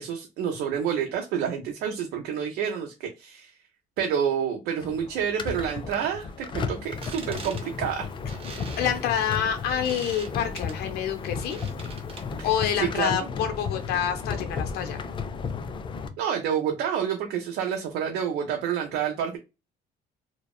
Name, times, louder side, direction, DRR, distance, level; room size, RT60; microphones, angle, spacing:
voice 1, 0.0-3.5 4.0-8.1 12.4-12.5 12.8-13.2 16.2-19.4, right 8 dB, 80° right, 2 dB, 0.6 m, -28 dB
sound 1, 4.8-16.1, left 5 dB, 30° left, 0.4 m, -34 dB
sound 2, 6.9-12.5, right 4 dB, 35° right, 0.7 m, -44 dB
voice 2, 8.8-11.6 12.4-15.0, left 9 dB, 70° left, 5 dB, 0.6 m, -27 dB
2.8 x 2.0 x 2.2 m, 0.26 s
cardioid pair, 110°, 17 cm